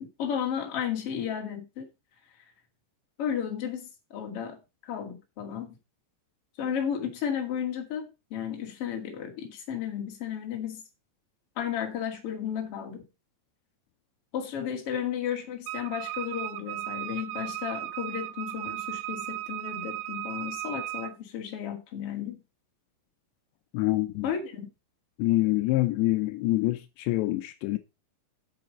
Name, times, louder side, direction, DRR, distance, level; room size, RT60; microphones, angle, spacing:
voice 1, 0.0-1.9 3.2-4.6 4.8-5.8 6.6-10.8 11.6-13.0 14.3-22.4 24.2-24.7, left 8 dB, 40° left, 2.6 m, -33 dB
Wind instrument woodwind instrument, 15.7-21.2, right 16 dB, 80° right, 2.6 m, -36 dB
voice 2, 23.7-24.3 25.2-27.8, left 18 dB, 80° left, 2.9 m, -26 dB
8.2 x 7.6 x 5.4 m
omnidirectional pair, 5.1 m